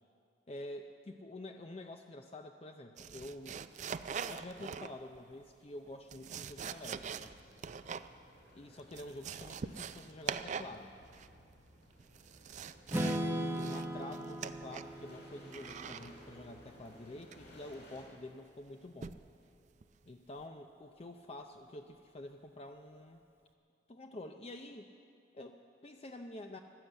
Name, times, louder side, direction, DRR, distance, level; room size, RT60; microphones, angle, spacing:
voice 1, 0.5-3.6 4.3-7.3 8.5-10.9 13.0-19.2 20.1-23.2 23.9-24.9 25.3-26.6, left 1 dB, 30° left, 5 dB, 0.5 m, -48 dB
sound 1, 3.0-5.2 5.9-8.1 8.4-8.5 8.8-10.8 11.1-11.5 12.0-13.3 13.5-15.0 15.5-16.1 17.3-17.6 19.0-19.3 19.8-20.1, right 6 dB, 40° right, 0.4 m, -43 dB
sound 2, 6.8-18.0, equal, 60° left, 5.4 m, -59 dB
Strum, 12.9-16.8, right 1 dB, 10° right, 0.8 m, -38 dB
15.0 x 11.5 x 8.0 m, 2.4 s
head